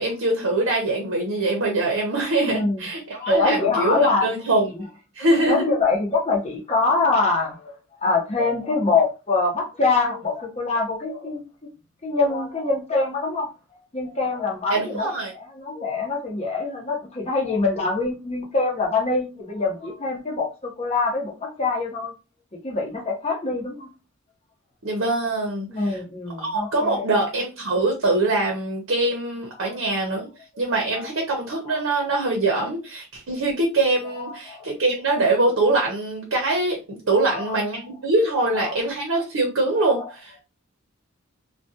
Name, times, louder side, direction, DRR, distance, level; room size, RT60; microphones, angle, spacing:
voice 1, 0.0-4.7 5.1-5.6 14.7-15.3 24.8-26.0 26.4-30.3 30.6-40.4, right 2 dB, 65° right, 0 dB, 0.7 m, -23 dB
voice 2, 2.5-2.8 3.2-4.3 4.7-4.8 5.4-7.7 8.0-11.4 12.0-13.5 13.9-15.1 15.3-22.1 22.5-23.9 25.7-27.0 29.6-29.8 31.7-31.8 34.2-34.7 37.3-37.6 38.5-38.8 39.8-40.1, left 3 dB, 30° left, -1 dB, 0.8 m, -24 dB
2.4 x 2.2 x 2.7 m, 0.29 s
head